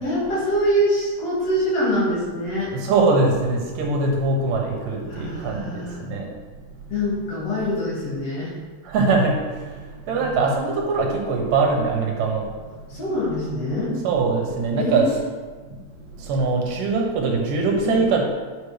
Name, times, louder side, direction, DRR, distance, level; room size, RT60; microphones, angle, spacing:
voice 1, 0.0-2.7 5.1-6.0 6.9-8.5 10.1-10.3 12.9-13.9 14.8-15.1 17.8-18.1, equal, 50° left, -8 dB, 3.1 m, -24 dB
voice 2, 2.7-6.3 8.8-12.5 14.0-15.1 15.6-18.3, right 3 dB, 75° right, 0 dB, 2.6 m, -22 dB
10.0 x 5.9 x 3.3 m, 1.4 s
omnidirectional pair, 3.9 m